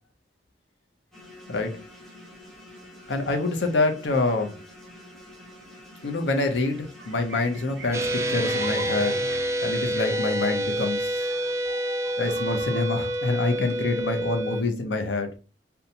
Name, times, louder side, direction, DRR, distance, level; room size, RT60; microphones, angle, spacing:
sound 1, 1.1-9.2, left 1 dB, ahead, 0.8 m, -47 dB
voice 1, 3.1-4.6 6.0-9.2 9.6-11.3 12.2-15.3, left 3 dB, 75° left, 0.6 m, -26 dB
sound 2, 6.7-14.3, right 2 dB, 65° right, 0.7 m, -42 dB
sound 3, 7.9-14.6, right 1 dB, 15° right, 0.3 m, -27 dB
2.7 x 2.2 x 2.7 m
head